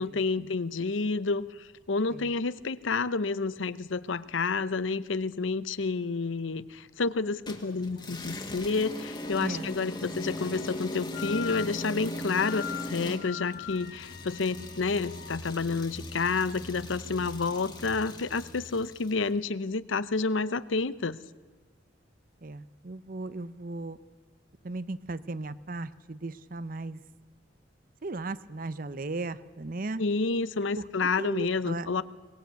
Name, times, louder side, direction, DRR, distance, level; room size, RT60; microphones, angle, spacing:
voice 1, 0.0-21.2 30.0-32.0, left 4 dB, 90° left, 16 dB, 0.7 m, -29 dB
sound 1, 7.5-19.2, left 1 dB, 25° left, 2.0 m, -39 dB
Wind instrument woodwind instrument, 9.0-15.4, left 10 dB, 55° left, 1.5 m, -43 dB
voice 2, 22.4-24.0 24.6-27.0 28.0-30.0 30.8-30.9 31.2-31.9, right 2 dB, 45° right, 15 dB, 0.7 m, -36 dB
23.0 x 20.0 x 8.2 m, 1.4 s
head